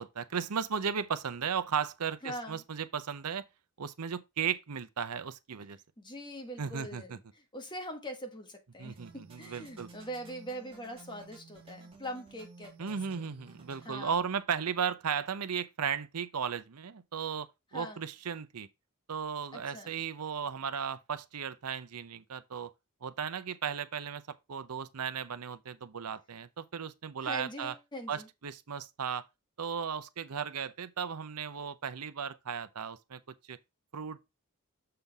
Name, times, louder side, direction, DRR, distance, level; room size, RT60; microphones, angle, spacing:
voice 1, 0.0-3.4 3.8-5.8 6.6-7.2 8.8-9.9 12.8-18.7 19.1-22.7 23.0-27.8 28.1-29.2 29.6-33.6 33.9-34.3, right 7 dB, 85° right, 0.7 m, -36 dB
voice 2, 2.2-2.6 6.0-7.2 7.5-13.0 13.8-14.1 17.7-18.0 19.5-19.9 27.2-28.3, equal, 20° left, 1.5 m, -42 dB
sound 1, 8.9-13.9, right 3 dB, 25° right, 2.3 m, -54 dB
6.8 x 5.7 x 3.5 m
head